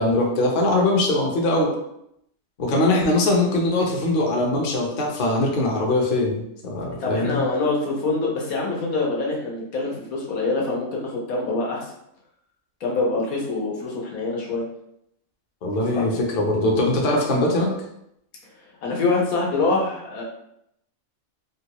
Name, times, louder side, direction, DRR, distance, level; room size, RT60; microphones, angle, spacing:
voice 1, 0.0-1.7 2.6-7.4 15.6-17.7, left 2 dB, 50° left, -1 dB, 0.7 m, -21 dB
voice 2, 6.9-11.9 12.8-14.6 15.9-16.1 18.8-20.2, left 3 dB, 85° left, -2 dB, 1.3 m, -25 dB
3.7 x 2.3 x 2.9 m, 0.77 s
omnidirectional pair, 1.5 m